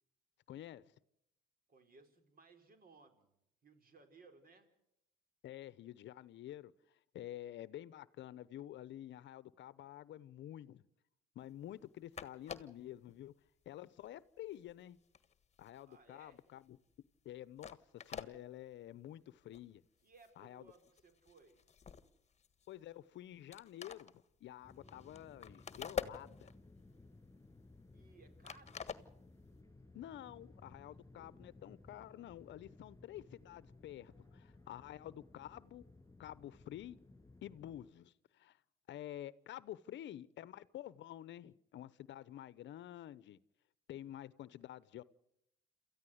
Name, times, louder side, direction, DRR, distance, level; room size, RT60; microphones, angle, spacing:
voice 1, 0.5-0.8 5.4-10.8 11.3-13.3 13.7-15.0 15.6-16.8 17.2-17.8 18.0-19.8 20.4-20.7 22.7-26.5 29.9-35.8 36.2-37.0 37.4-38.6 38.9-43.4 43.9-45.0, left 12 dB, 65° left, 0.8 m, -50 dB
voice 2, 1.7-3.3 3.6-4.7 15.9-16.4 20.0-21.6 27.9-28.8, right 3 dB, 45° right, 4.3 m, -63 dB
sound 1, 11.8-11.9 12.1-12.9 13.5-13.7 14.0-16.4 16.7-16.9 17.3-17.4 17.6-18.3 19.0-19.1 19.4-19.6 20.0-20.4 20.7-22.9 23.2-23.3 23.5-26.7 27.1-28.2 28.4-29.6, left 7 dB, 35° left, 1.5 m, -47 dB
sound 2, 24.6-37.9, left 2 dB, 15° left, 7.5 m, -60 dB
28.0 x 14.5 x 7.9 m
supercardioid pair, 85°, 21 cm